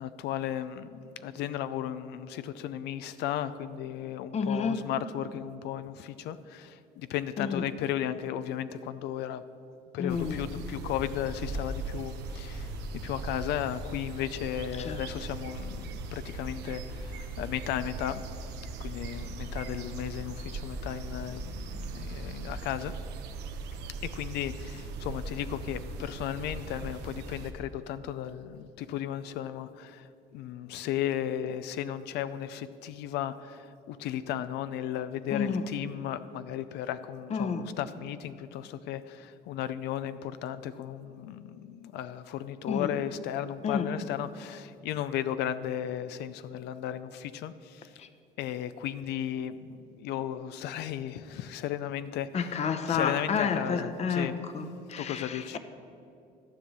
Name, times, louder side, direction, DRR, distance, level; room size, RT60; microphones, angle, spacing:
voice 1, 0.0-9.4 9.9-12.8 13.0-18.2 18.8-22.9 24.1-48.0 48.4-52.3 52.9-54.4 55.0-55.6, left 11 dB, 80° left, 13 dB, 0.5 m, -35 dB
voice 2, 4.3-4.9 7.4-7.6 10.0-10.5 14.8-15.0 35.3-35.7 37.3-37.6 42.7-42.9 43.6-43.9 48.0-48.1 52.3-55.6, left 5 dB, 40° left, 9 dB, 0.8 m, -30 dB
sound 1, 10.1-27.5, right 3 dB, 80° right, 1.0 m, -39 dB
12.5 x 5.4 x 8.7 m, 2.5 s
cardioid pair, 110°, 17 cm